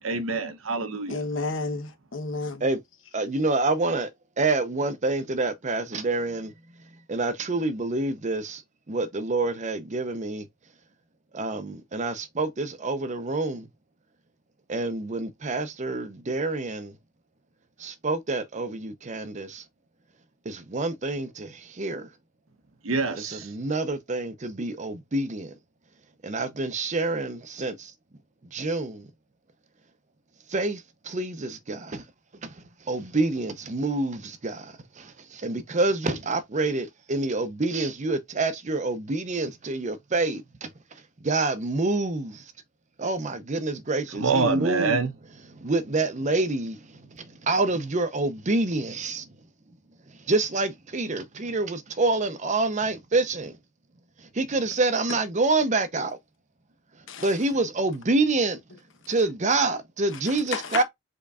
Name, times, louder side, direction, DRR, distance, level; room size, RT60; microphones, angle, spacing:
voice 1, 0.0-1.2 22.8-23.5 44.1-45.1, right 4 dB, 80° right, 0.8 m, -26 dB
voice 2, 1.1-2.7 57.1-57.3 60.5-60.8, left 3 dB, 65° left, 1.1 m, -31 dB
voice 3, 3.1-10.5 11.3-13.7 14.7-17.0 17.8-19.6 20.4-22.1 23.1-25.6 26.2-27.9 28.5-29.1 30.5-32.1 32.4-42.5 43.0-45.0 45.6-49.4 50.1-53.6 54.2-56.2 57.0-58.6 59.1-60.8, right 2 dB, 35° right, 0.7 m, -27 dB
5.3 x 3.8 x 2.4 m
head